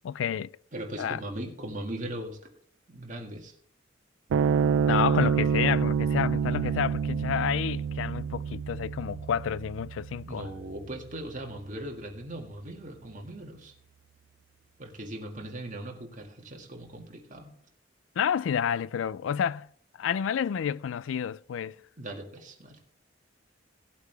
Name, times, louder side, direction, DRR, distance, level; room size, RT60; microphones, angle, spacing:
voice 1, 0.0-0.5 1.0-1.2 4.9-10.5 18.2-19.7 20.0-21.8, left 8 dB, 90° left, 0.3 m, -29 dB
voice 2, 0.7-2.5 2.9-3.5 10.2-13.7 14.8-17.6 21.7-22.8, right 1 dB, 45° right, 1.8 m, -39 dB
sound 1, 4.3-11.0, right 6 dB, 80° right, 0.3 m, -28 dB
17.0 x 8.2 x 3.4 m
head